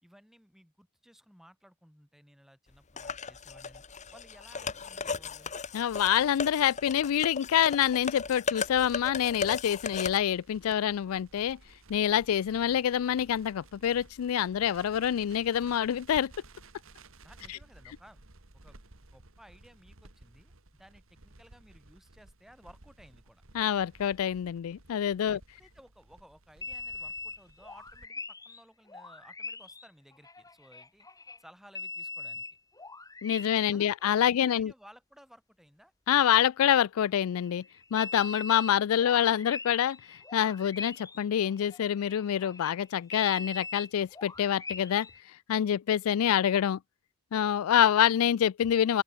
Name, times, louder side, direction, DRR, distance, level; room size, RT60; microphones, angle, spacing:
voice 1, 0.0-5.5 17.2-18.2 18.5-18.8 19.1-20.5 20.8-23.4 25.3-31.1 31.4-32.4 33.7-34.0 34.3-35.9, equal, ahead, 3.7 m, -57 dB
sound 1, 3.0-10.2, left 5 dB, 35° left, 1.1 m, -36 dB
voice 2, 5.7-11.6 11.9-16.3 23.5-25.4 33.2-34.7 36.1-37.6 37.9-45.1 45.5-46.8 47.3-49.0, left 9 dB, 75° left, 0.3 m, -26 dB
Crackle, 8.2-28.1, right 2 dB, 65° right, 2.4 m, -56 dB
sound 2, 26.6-28.6 28.9-31.4 31.8-33.8 34.0-34.1 37.2-45.2, left 4 dB, 15° left, 2.2 m, -42 dB
open air
head